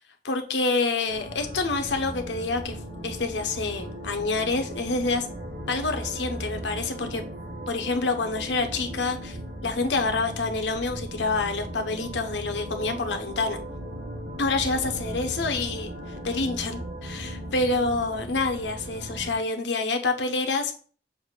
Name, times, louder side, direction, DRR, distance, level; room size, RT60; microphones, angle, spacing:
voice 1, 0.2-2.8 3.0-5.3 5.7-7.2 7.7-9.4 9.6-13.6 14.4-20.8, left 3 dB, 80° left, 0.9 m, -27 dB
sound 1, 1.1-19.3, right 1 dB, 85° right, 2.4 m, -37 dB
7.0 x 2.7 x 5.1 m
head